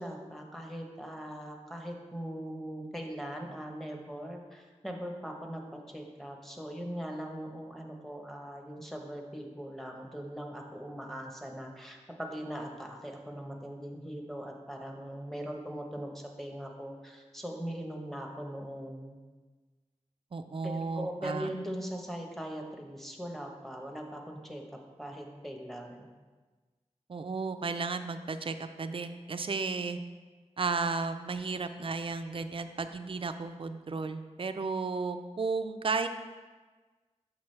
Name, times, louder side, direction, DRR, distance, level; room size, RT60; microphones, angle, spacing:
voice 1, 0.0-19.2 20.6-26.1, equal, ahead, 1 dB, 0.9 m, -40 dB
voice 2, 20.3-21.5 27.1-30.0 30.6-36.1, right 4 dB, 50° right, 9 dB, 0.4 m, -34 dB
6.1 x 5.9 x 3.2 m, 1.4 s
wide cardioid pair, 65°, 12 cm